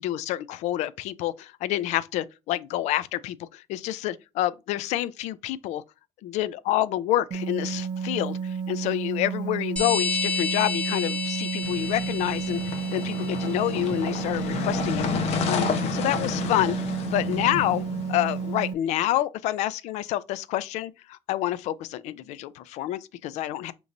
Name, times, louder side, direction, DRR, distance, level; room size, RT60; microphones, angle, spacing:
voice 1, 0.0-5.8 6.2-12.6 12.9-15.1 15.5-16.8 17.0-17.8 18.1-23.7, left 13 dB, 85° left, 0.4 m, -28 dB
sound 1, 7.3-18.7, right 6 dB, 40° right, 0.4 m, -31 dB
sound 2, 9.8-14.0, left 5 dB, 10° left, 1.0 m, -31 dB
sound 3, 11.6-18.6, left 6 dB, 65° left, 0.8 m, -31 dB
5.2 x 3.0 x 2.5 m
cardioid pair, 140°, 12 cm